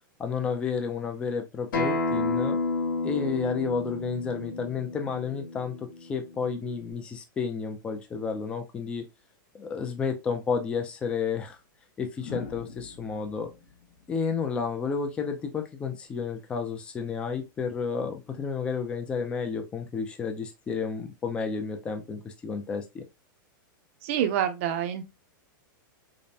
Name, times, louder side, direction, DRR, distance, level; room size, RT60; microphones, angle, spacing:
voice 1, 0.2-2.6 3.0-9.1 9.5-11.6 12.0-13.5 14.1-23.0, left 5 dB, 10° left, 0.4 m, -31 dB
Acoustic guitar, 1.7-6.9, left 3 dB, 75° left, 2.4 m, -31 dB
sound 1, 10.7-10.8 12.1-15.2 16.8-17.1, left 5 dB, 50° left, 0.9 m, -44 dB
voice 2, 24.0-25.1, right 10 dB, 35° right, 0.6 m, -27 dB
5.1 x 2.1 x 2.7 m
supercardioid pair, 170°, 11 cm